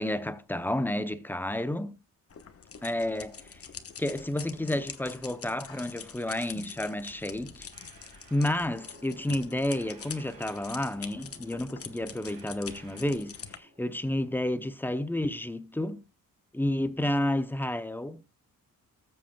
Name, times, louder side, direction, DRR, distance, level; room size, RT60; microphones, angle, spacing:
voice 1, 0.0-2.0 2.8-3.6 4.0-7.7 8.3-16.0 16.5-18.2, left 1 dB, 5° left, 0.6 m, -31 dB
sound 1, 2.3-13.6, left 7 dB, 40° left, 1.1 m, -45 dB
sound 2, 7.7-8.6 9.6-11.2 12.2-13.3, right 5 dB, 85° right, 3.7 m, -56 dB
sound 3, 8.3-14.5, right 1 dB, 25° right, 3.4 m, -56 dB
19.0 x 7.7 x 2.3 m
wide cardioid pair, 160°, 34 cm